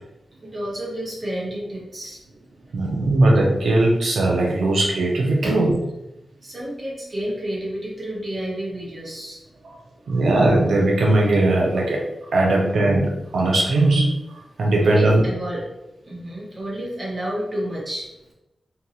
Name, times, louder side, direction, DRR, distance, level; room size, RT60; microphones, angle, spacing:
voice 1, 0.4-2.2 5.4-5.6 6.4-9.4 14.7-15.7 16.0-18.1, right 1 dB, 35° right, -4 dB, 1.0 m, -30 dB
voice 2, 2.7-5.7 10.1-12.0 12.3-14.1 14.6-15.2, right 2 dB, 90° right, -2 dB, 0.4 m, -19 dB
2.7 x 2.2 x 2.7 m, 0.93 s
wide cardioid pair, 95°, 0 cm